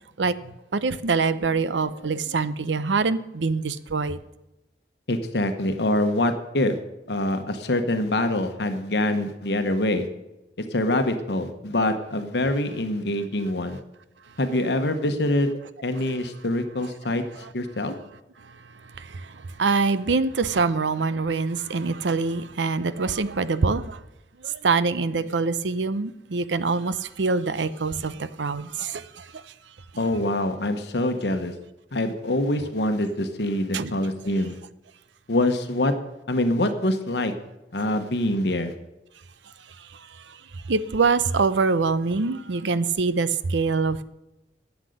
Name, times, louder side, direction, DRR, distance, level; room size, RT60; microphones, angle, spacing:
voice 1, 0.2-4.2 19.0-24.0 24.4-29.4 33.7-33.9 39.9-40.0 40.3-40.4 40.7-44.0, right 4 dB, 90° right, 0.7 m, -25 dB
voice 2, 5.1-6.8 7.1-10.1 10.6-13.8 14.4-15.5 15.8-17.2 17.5-17.9 30.0-31.5 31.9-34.6 35.3-35.9 36.3-37.3 37.7-38.7, left 1 dB, 65° left, 1.1 m, -25 dB
11.5 x 8.2 x 6.5 m
head